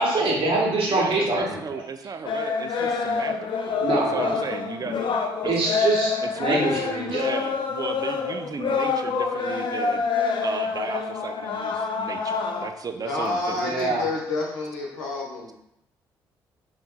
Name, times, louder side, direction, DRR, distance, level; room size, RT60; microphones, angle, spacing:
voice 1, 0.0-1.8 3.8-4.4 5.4-7.2 13.6-14.0, right 2 dB, 55° right, -2 dB, 1.3 m, -24 dB
voice 2, 0.9-5.1 5.4-5.6 6.3-6.8 7.1-10.0 10.4-13.6, right 5 dB, 35° right, 7 dB, 0.5 m, -34 dB
sound 1, 2.3-12.7, left 5 dB, 50° left, 0.5 m, -27 dB
voice 3, 12.9-15.5, left 2 dB, 80° left, -2 dB, 0.9 m, -29 dB
5.3 x 3.0 x 2.3 m, 0.77 s
figure-of-eight pair, 40°, 11 cm